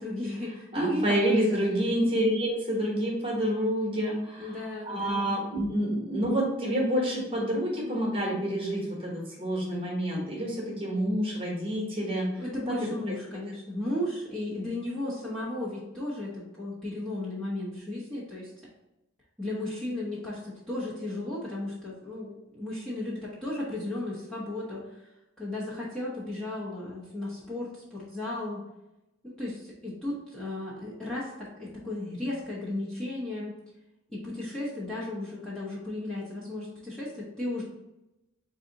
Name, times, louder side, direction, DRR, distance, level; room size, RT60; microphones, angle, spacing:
voice 1, 0.0-1.4 1.9-2.0 4.4-5.2 12.4-18.5 19.4-25.1 25.4-28.6 29.4-33.5 34.1-37.6, left 1 dB, 5° left, -8 dB, 0.8 m, -34 dB
voice 2, 0.7-12.8 13.1-13.2, equal, 25° right, -3 dB, 1.1 m, -28 dB
4.0 x 2.7 x 3.8 m, 0.94 s
head